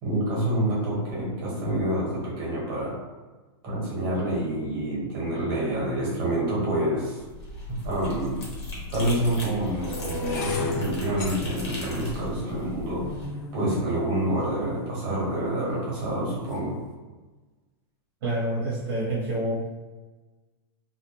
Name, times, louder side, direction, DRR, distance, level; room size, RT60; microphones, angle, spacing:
voice 1, 0.0-3.0 3.6-7.2 7.8-8.4 8.9-13.0 13.5-16.8, right 1 dB, 30° right, -6 dB, 1.1 m, -27 dB
sound 1, 7.2-13.3, left 1 dB, 75° left, 1.1 m, -37 dB
sound 2, 8.0-8.1 8.9-15.0 15.7-16.1 16.3-16.7, left 3 dB, 40° left, 0.4 m, -36 dB
voice 2, 18.2-19.7, right 1 dB, 50° right, -9 dB, 0.8 m, -27 dB
2.3 x 2.1 x 2.9 m, 1.3 s
supercardioid pair, 170°, 14 cm